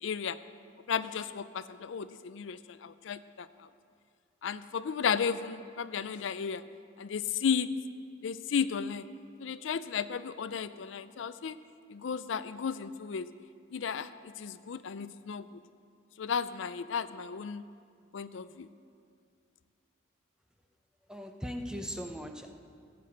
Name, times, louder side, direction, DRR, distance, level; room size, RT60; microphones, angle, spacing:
voice 1, 0.0-0.4 0.9-3.5 4.4-6.6 7.0-7.7 8.2-9.0 9.4-11.6 11.9-13.3 13.7-14.1 14.4-15.5 16.2-17.6 18.1-18.7, left 6 dB, 70° left, 13 dB, 0.4 m, -34 dB
voice 2, 21.1-22.5, equal, 5° right, 5 dB, 0.7 m, -39 dB
16.5 x 6.8 x 7.9 m, 2.3 s
head